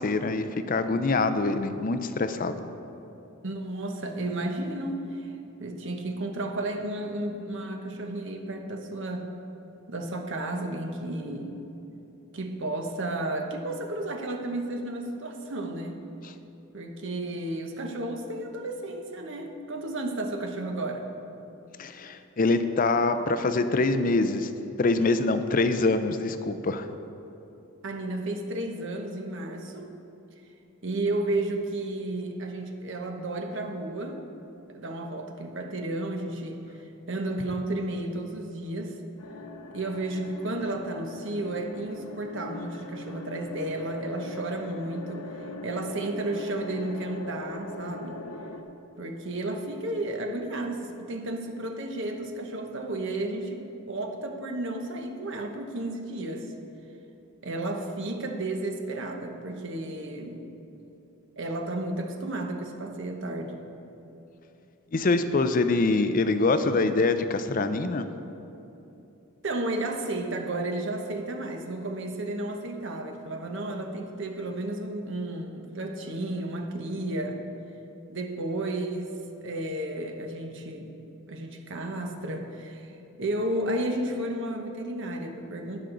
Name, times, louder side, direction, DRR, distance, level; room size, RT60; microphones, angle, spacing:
voice 1, 0.0-2.6 16.2-16.3 21.8-24.5 24.8-26.9 64.9-68.1, left 3 dB, 40° left, 10 dB, 0.5 m, -25 dB
voice 2, 3.4-5.3 5.6-9.3 9.9-11.6 12.3-16.0 16.7-21.1 27.8-29.9 30.8-34.2 34.7-36.6 37.1-39.0 39.7-45.3 45.6-48.2 49.0-53.6 53.9-56.5 57.4-60.5 61.4-63.6 69.4-77.4 78.1-79.1 79.4-80.9 81.3-85.8, right 1 dB, 55° right, 4 dB, 1.0 m, -32 dB
sound 1, 39.2-48.6, left 2 dB, 75° left, 0.7 m, -41 dB
18.5 x 6.2 x 3.9 m, 2.9 s
head